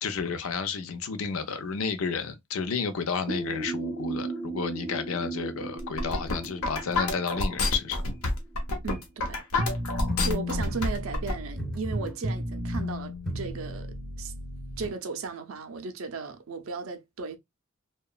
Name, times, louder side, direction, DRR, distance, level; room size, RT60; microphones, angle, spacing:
voice 1, 0.0-8.0, left 5 dB, 65° left, 0.5 m, -31 dB
sound 1, 3.3-8.8, right 3 dB, 35° left, 0.8 m, -36 dB
sound 2, 5.8-11.3, left 2 dB, 90° left, 0.8 m, -28 dB
voice 2, 8.8-9.4 10.2-14.3 14.8-17.4, right 4 dB, 65° right, 0.5 m, -36 dB
sound 3, 9.6-14.9, left 1 dB, 5° left, 0.5 m, -33 dB
2.8 x 2.2 x 2.3 m
head